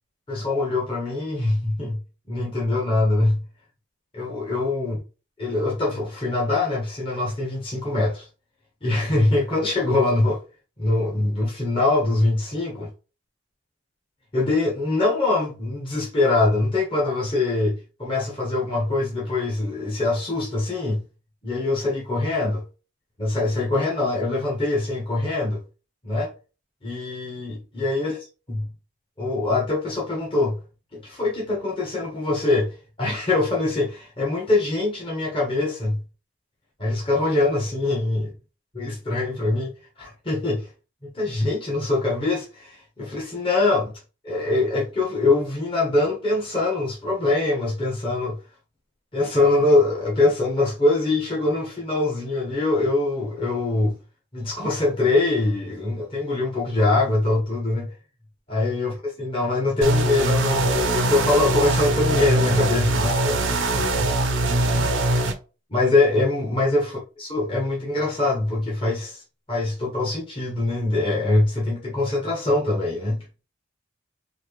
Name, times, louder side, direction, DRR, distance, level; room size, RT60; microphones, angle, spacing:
voice 1, 0.3-2.0 2.3-3.4 4.1-5.0 5.4-8.3 8.8-10.4 10.8-12.9 14.3-21.0 21.4-22.6 23.2-25.6 26.0-26.3 26.8-28.7 29.2-30.6 30.9-36.0 36.8-38.3 38.7-40.7 41.1-43.9 44.2-48.4 49.1-54.0 54.3-57.9 58.5-64.1 64.7-64.9 65.7-69.2 69.5-73.2, left 2 dB, 25° left, 1.1 m, -23 dB
sound 1, 59.8-65.3, right 2 dB, 85° right, 0.8 m, -22 dB
4.3 x 2.6 x 3.2 m
head